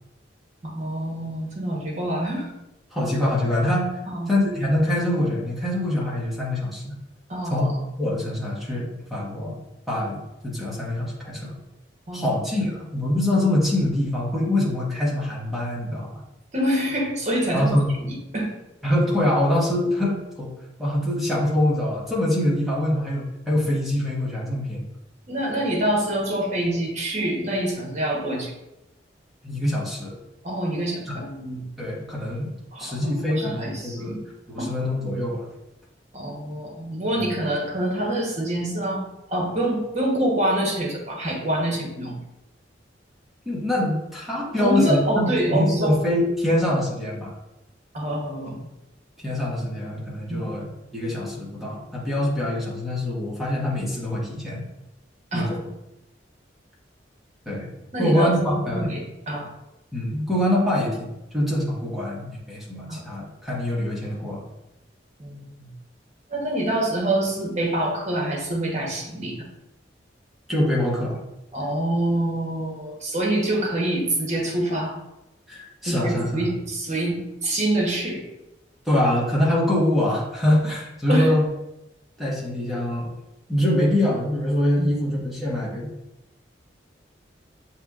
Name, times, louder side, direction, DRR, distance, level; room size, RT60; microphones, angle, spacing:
voice 1, 0.6-2.5 4.1-4.3 7.3-7.8 12.1-12.3 16.5-18.5 25.3-28.5 30.4-31.6 32.7-34.2 34.6-34.7 36.1-42.2 44.6-46.0 47.9-48.6 50.3-50.7 55.3-55.6 57.9-59.5 62.9-63.0 65.2-65.7 66.3-69.5 71.5-75.0 75.9-78.2 81.1-81.4 84.8-85.2, right 1 dB, 40° right, -1 dB, 1.0 m, -26 dB
voice 2, 2.9-3.9 4.3-6.9 7.5-7.6 8.0-9.5 9.9-11.6 12.1-16.2 17.5-17.9 18.8-20.5 20.8-24.9 29.4-30.1 31.1-31.2 31.8-32.5 32.8-34.1 34.5-35.5 37.1-37.3 43.4-47.3 49.2-50.7 50.9-54.6 55.3-55.4 57.5-57.7 58.0-58.9 59.9-64.4 70.5-71.2 75.5-76.5 78.8-81.4 82.2-83.1 83.5-85.9, left 1 dB, ahead, -6 dB, 1.1 m, -24 dB
6.7 x 2.9 x 2.4 m, 0.93 s
head